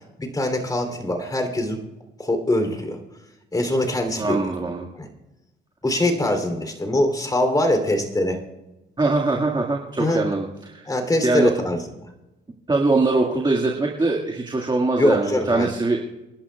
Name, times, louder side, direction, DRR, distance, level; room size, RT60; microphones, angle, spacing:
voice 1, 0.2-1.8 2.2-3.0 3.5-4.5 5.0-5.1 5.8-8.4 10.0-10.2 10.9-11.8 15.0-15.7, left 1 dB, 20° left, 5 dB, 3.3 m, -22 dB
voice 2, 4.2-4.9 9.0-10.5 10.7-10.8 11.2-11.5 12.7-16.0, right 3 dB, 20° right, 0 dB, 1.9 m, -22 dB
28.5 x 11.5 x 2.4 m, 1.0 s
cardioid pair, 90°, 20 cm